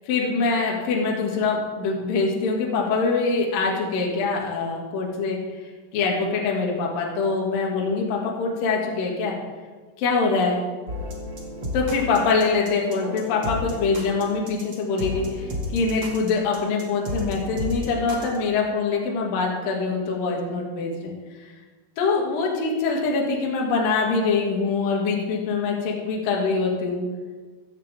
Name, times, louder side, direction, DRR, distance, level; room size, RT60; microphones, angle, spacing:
voice 1, 0.1-5.4 5.9-9.4 10.0-10.6 11.7-21.1 22.0-27.0, left 4 dB, 55° left, -2 dB, 3.0 m, -24 dB
sound 1, 10.9-18.4, left 1 dB, 70° right, 1.1 m, -32 dB
15.0 x 14.0 x 3.6 m, 1.4 s
omnidirectional pair, 6.0 m